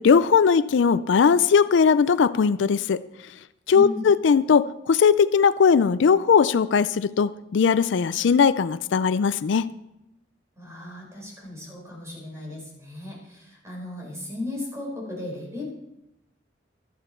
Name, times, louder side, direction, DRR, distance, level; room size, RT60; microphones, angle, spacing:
voice 1, 0.0-3.0 3.7-9.7, left 6 dB, 75° left, 16 dB, 0.4 m, -19 dB
voice 2, 3.7-4.0 10.6-15.6, left 2 dB, 15° right, -2 dB, 4.9 m, -36 dB
13.0 x 11.0 x 4.4 m, 0.88 s
head